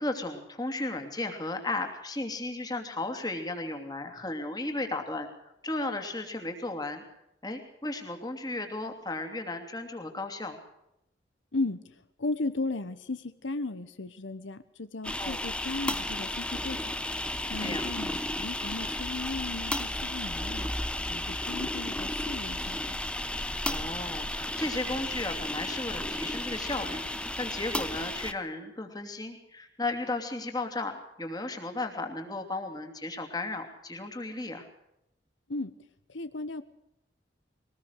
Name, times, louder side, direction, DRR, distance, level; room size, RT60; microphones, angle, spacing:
voice 1, 0.0-5.3 5.6-7.0 7.4-10.6 15.2-15.5 17.5-17.9 23.6-27.0 27.4-34.7, left 2 dB, 20° left, 5 dB, 2.9 m, -35 dB
voice 2, 11.5-16.9 17.5-20.7 21.1-23.0 35.5-35.7 36.1-36.6, left 2 dB, 90° left, 12 dB, 1.1 m, -36 dB
sound 1, 15.0-28.3, left 1 dB, 5° left, 0.9 m, -33 dB
22.5 x 20.0 x 6.6 m, 0.81 s
head